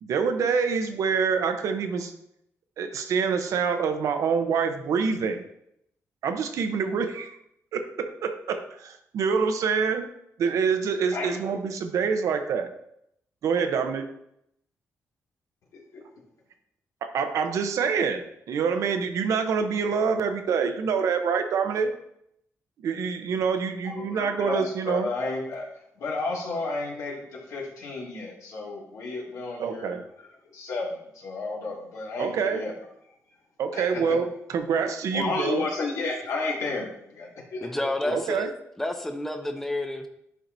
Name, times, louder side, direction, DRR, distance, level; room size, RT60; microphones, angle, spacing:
voice 1, 0.0-2.1 2.8-5.4 6.2-7.4 7.7-10.0 10.4-12.7 13.4-14.1 17.1-21.9 22.8-25.1 29.6-30.0 32.2-32.6 33.6-35.6 38.1-38.5, right 6 dB, 75° right, 7 dB, 0.8 m, -26 dB
voice 2, 23.8-25.7 26.0-30.0 30.5-32.7 33.7-34.2 35.1-38.1, left 3 dB, 80° left, -4 dB, 2.3 m, -32 dB
voice 3, 37.6-38.5 38.8-40.1, left 1 dB, 5° left, 6 dB, 0.5 m, -29 dB
11.0 x 4.6 x 2.7 m, 0.75 s
cardioid pair, 145°, 6 cm